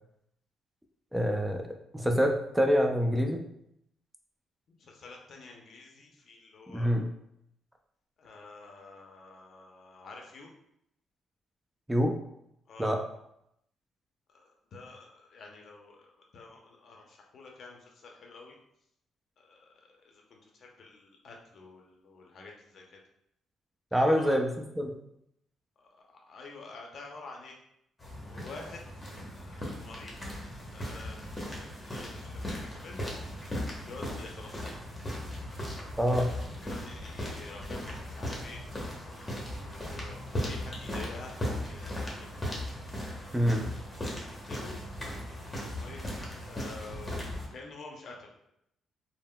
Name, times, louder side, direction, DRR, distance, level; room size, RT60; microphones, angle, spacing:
voice 1, 1.1-1.6 1.9-3.4 6.7-7.1 11.9-12.2 12.8-13.0 23.9-25.0 36.0-36.3 43.3-43.7, equal, 5° right, 3 dB, 0.4 m, -26 dB
voice 2, 4.7-7.0 8.2-10.5 12.7-12.9 14.3-18.6 19.4-23.0 23.9-24.4 25.8-27.5 28.2-28.8 29.3-30.1 30.7-33.0 33.9-34.8 36.6-38.6 39.3-41.4 41.6-42.3 43.5-43.7 44.3-44.8 45.3-46.0 46.5-48.3, left 3 dB, 60° left, 0 dB, 0.6 m, -48 dB
sound 1, 28.0-47.5, left 1 dB, 20° left, 0.9 m, -38 dB
sound 2, 33.1-35.6 36.0-38.8, right 1 dB, 60° right, 0.7 m, -54 dB
3.5 x 2.0 x 2.2 m, 0.78 s
cardioid pair, 90°, 0 cm